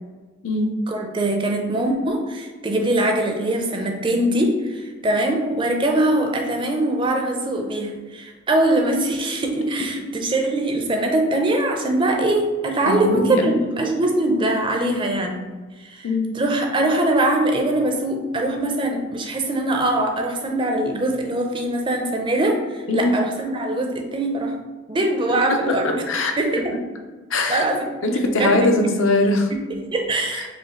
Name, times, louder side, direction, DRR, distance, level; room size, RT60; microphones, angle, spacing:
voice 1, 0.9-15.4 15.8-16.1 16.3-24.6 24.9-26.0 26.4-26.7 27.5-27.9 28.4-28.7 29.7-30.5, right 1 dB, 25° right, 3 dB, 0.4 m, -22 dB
voice 2, 12.9-13.6 16.0-16.3 22.9-23.2 25.5-25.7 26.1-26.3 27.3-27.6 28.0-29.5 30.3-30.5, left 2 dB, 70° left, 3 dB, 0.6 m, -21 dB
5.1 x 2.4 x 3.6 m, 1.3 s
head